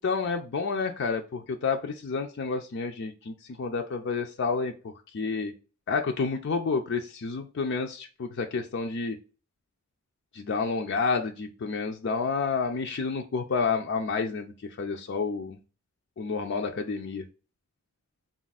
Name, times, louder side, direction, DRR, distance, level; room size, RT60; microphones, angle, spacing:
voice 1, 0.0-5.5 5.9-9.2 10.3-15.6 16.2-17.2, left 4 dB, 55° left, 4 dB, 0.4 m, -30 dB
3.9 x 2.4 x 4.0 m, 0.33 s
head